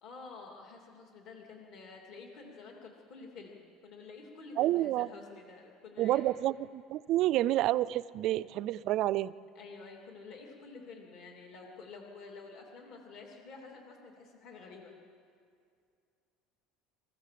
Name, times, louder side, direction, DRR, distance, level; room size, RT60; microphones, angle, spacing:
voice 1, 0.0-6.3 9.5-14.9, left 4 dB, 50° left, 0 dB, 2.8 m, -49 dB
voice 2, 4.6-5.1 6.0-9.3, right 14 dB, 45° right, 18 dB, 0.4 m, -29 dB
25.0 x 15.0 x 7.6 m, 2.3 s
cardioid pair, 170°, 0 cm